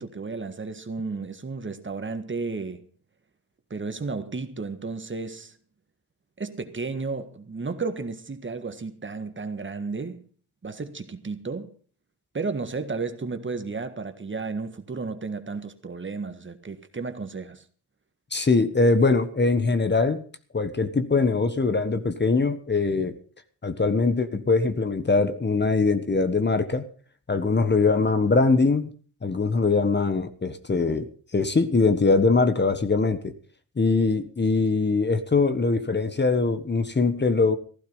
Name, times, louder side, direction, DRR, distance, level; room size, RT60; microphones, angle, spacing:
voice 1, 0.0-2.9 3.7-5.6 6.4-10.3 10.6-11.7 12.3-17.6, right 4 dB, 30° right, 1.7 m, -33 dB
voice 2, 18.3-20.2 20.5-23.2 23.6-26.8 27.3-28.9 29.2-33.3 33.8-37.6, left 3 dB, 25° left, 1.4 m, -22 dB
15.5 x 11.5 x 5.5 m
cardioid pair, 70°, 39 cm